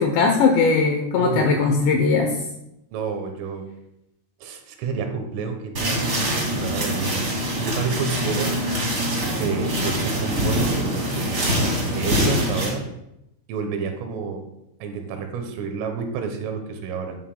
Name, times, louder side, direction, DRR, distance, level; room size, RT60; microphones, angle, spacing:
voice 1, 0.0-2.3, left 4 dB, 80° left, 3 dB, 2.6 m, -19 dB
voice 2, 1.2-1.6 2.9-3.6 4.4-7.3 7.6-8.6 9.4-11.5 11.9-12.9 13.5-14.4 14.8-17.2, right 5 dB, 80° right, 5 dB, 3.6 m, -29 dB
sound 1, 5.7-12.7, equal, 55° right, 0.9 m, -24 dB
11.0 x 11.0 x 2.3 m, 0.85 s
omnidirectional pair, 6.0 m